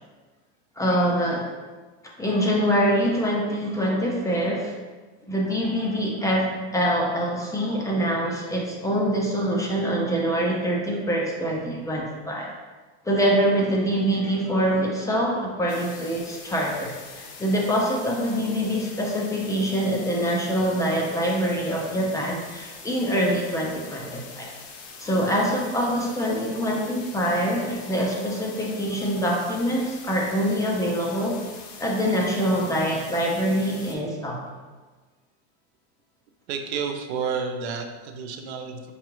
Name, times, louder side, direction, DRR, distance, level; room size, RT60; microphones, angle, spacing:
voice 1, 0.8-1.4 2.2-4.7 5.3-12.5 13.0-24.5 25.0-31.4 31.8-34.4, equal, 10° left, -2 dB, 0.4 m, -24 dB
sound 1, 15.7-34.0, left 5 dB, 60° left, 0.7 m, -43 dB
voice 2, 36.5-38.9, right 6 dB, 75° right, 5 dB, 0.5 m, -30 dB
4.7 x 2.2 x 3.0 m, 1.3 s
supercardioid pair, 125°, 33 cm